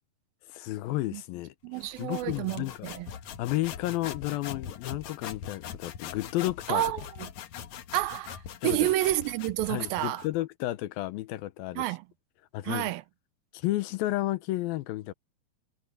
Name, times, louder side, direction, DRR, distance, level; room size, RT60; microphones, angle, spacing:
voice 1, 0.5-2.9 3.4-6.8 8.6-8.9 9.7-11.8 12.5-12.9 13.5-15.1, left 17 dB, 90° left, 2.6 m, -32 dB
voice 2, 1.6-3.1 6.7-7.3 7.9-10.2 11.8-12.0 12.6-13.0, right 16 dB, 90° right, 2.5 m, -30 dB
sound 1, 1.8-10.4, left 9 dB, 60° left, 2.3 m, -42 dB
omnidirectional pair, 4.2 m